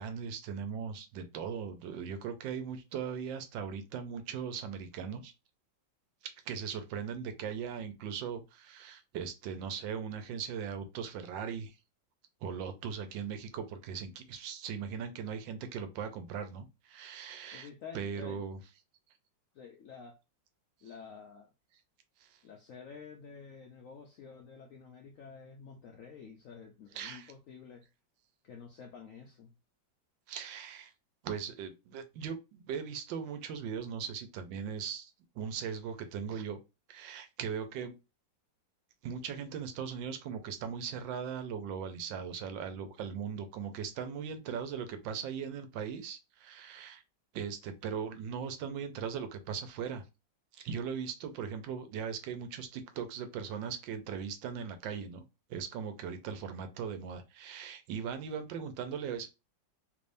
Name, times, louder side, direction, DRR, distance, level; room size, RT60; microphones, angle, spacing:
voice 1, 0.0-5.3 6.5-11.8 12.4-17.7 17.9-18.6 22.2-22.4 26.9-27.3 30.3-30.9 31.2-36.6 36.9-37.9 39.0-47.0 47.3-50.0 50.5-55.2 55.5-59.3, right 7 dB, 80° right, 1.3 m, -39 dB
voice 2, 17.5-18.4 19.5-20.2 20.8-21.5 22.4-27.9 28.4-29.5, left 6 dB, 75° left, 0.7 m, -50 dB
3.4 x 3.3 x 2.6 m
omnidirectional pair, 2.0 m